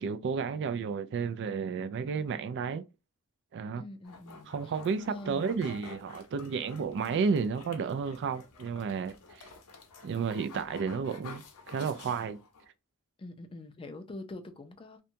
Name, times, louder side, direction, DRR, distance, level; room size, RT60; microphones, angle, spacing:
voice 1, 0.0-2.8 3.5-3.8 4.5-9.5 10.0-12.4, right 5 dB, 55° right, 0.3 m, -32 dB
voice 2, 3.8-4.7 5.1-5.7 13.2-15.0, left 2 dB, 25° left, 0.4 m, -45 dB
sound 1, 4.0-12.7, left 4 dB, 80° left, 0.7 m, -50 dB
2.7 x 2.2 x 2.6 m
head